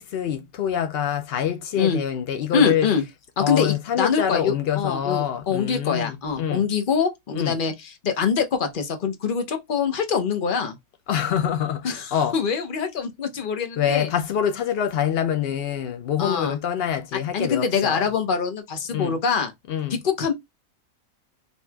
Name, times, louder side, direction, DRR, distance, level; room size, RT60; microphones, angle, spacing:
voice 1, 0.0-2.9 3.4-6.7 7.3-7.6 11.1-12.3 13.8-18.0 18.9-19.2 19.7-19.9, left 9 dB, 85° left, 0.5 m, -25 dB
voice 2, 2.5-3.0 3.4-10.8 11.8-14.1 16.2-16.6 17.3-19.5 19.9-20.3, left 6 dB, 45° left, 0.7 m, -24 dB
4.6 x 2.7 x 2.2 m
omnidirectional pair, 1.6 m